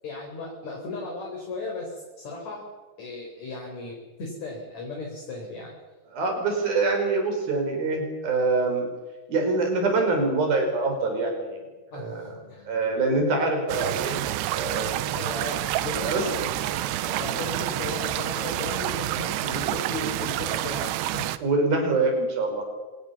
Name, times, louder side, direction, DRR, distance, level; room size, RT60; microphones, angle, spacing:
voice 1, 0.0-2.7 3.0-5.7 11.9-13.0 15.1-21.4, left 3 dB, 45° left, -1 dB, 5.4 m, -36 dB
voice 2, 6.1-8.9 9.3-11.6 11.9-12.3 12.7-14.2 14.5-15.1 16.0-16.2 19.6-19.7 21.4-22.7, right 3 dB, 60° right, 3 dB, 7.0 m, -25 dB
sound 1, 13.7-21.4, right 14 dB, 80° right, 2.8 m, -28 dB
26.0 x 20.0 x 7.1 m, 1.3 s
omnidirectional pair, 4.7 m